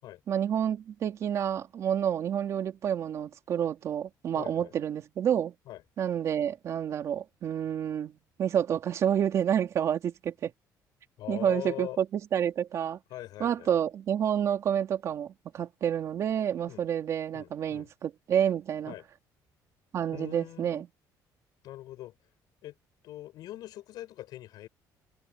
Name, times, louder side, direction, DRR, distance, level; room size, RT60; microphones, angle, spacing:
voice 1, 0.3-5.5 6.0-10.5 11.3-13.0 13.4-18.9 19.9-20.9, right 9 dB, 45° right, 3.5 m, -29 dB
voice 2, 4.3-4.7 5.7-5.8 11.2-12.0 13.1-13.7 16.7-16.9 17.3-17.9 18.9-19.1 20.1-20.8 21.6-22.1 22.6-22.8 23.0-24.7, left 14 dB, 70° left, 7.9 m, -42 dB
cardioid pair, 170°, 7 cm